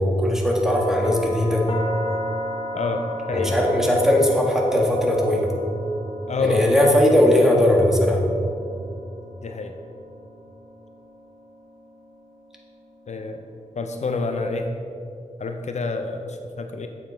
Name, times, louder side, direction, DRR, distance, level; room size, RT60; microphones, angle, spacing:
voice 1, 0.0-1.6 3.3-5.5 6.4-8.2, left 1 dB, 5° right, -1 dB, 1.5 m, -19 dB
sound 1, 0.6-14.5, left 1 dB, 45° left, 1.0 m, -36 dB
voice 2, 2.7-3.6 6.3-6.7 9.4-9.7 13.1-13.4 13.8-14.7 15.4-16.9, left 3 dB, 60° left, 5 dB, 0.6 m, -27 dB
7.8 x 7.2 x 4.3 m, 2.6 s
wide cardioid pair, 75°, 13 cm